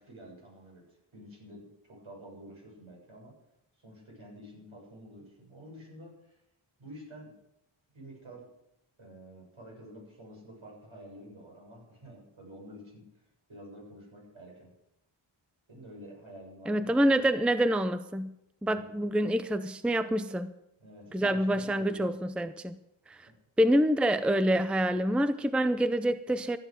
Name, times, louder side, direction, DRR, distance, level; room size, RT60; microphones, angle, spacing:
voice 1, 0.0-3.4 3.8-6.4 6.8-7.4 7.9-8.5 9.0-13.0 13.5-14.7 15.7-17.3 18.7-18.9 20.8-22.0, right 1 dB, 75° right, -2 dB, 7.2 m, -49 dB
voice 2, 16.7-18.3 18.6-20.5 21.1-22.8 23.1-23.3 23.6-26.6, right 1 dB, ahead, 11 dB, 0.6 m, -27 dB
14.5 x 9.9 x 6.6 m, 0.82 s
wide cardioid pair, 75°, 49 cm